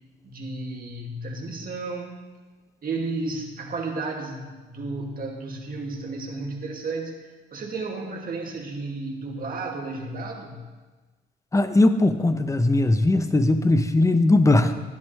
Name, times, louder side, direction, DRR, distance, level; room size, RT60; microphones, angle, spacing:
voice 1, 0.2-2.3 2.8-10.7, right 3 dB, 45° right, 0 dB, 2.2 m, -33 dB
voice 2, 11.5-14.7, left 2 dB, 15° left, 9 dB, 0.8 m, -19 dB
14.0 x 10.5 x 3.2 m, 1.3 s
cardioid pair, 90°, 20 cm